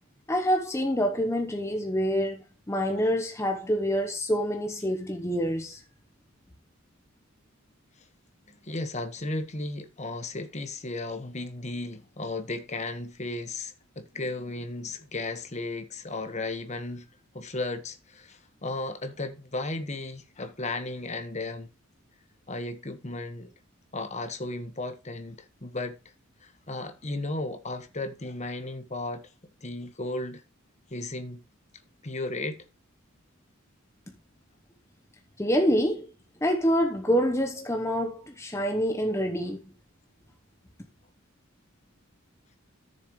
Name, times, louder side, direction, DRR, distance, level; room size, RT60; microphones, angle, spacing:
voice 1, 0.3-5.8 35.4-36.1 36.4-39.6, equal, 15° left, 0.9 m, -26 dB
voice 2, 8.6-17.1 17.3-21.7 22.5-23.5 23.9-26.0 26.4-29.3 29.6-30.4 30.9-31.4 32.0-32.6, left 2 dB, 35° left, 1.3 m, -35 dB
13.5 x 6.9 x 3.1 m
head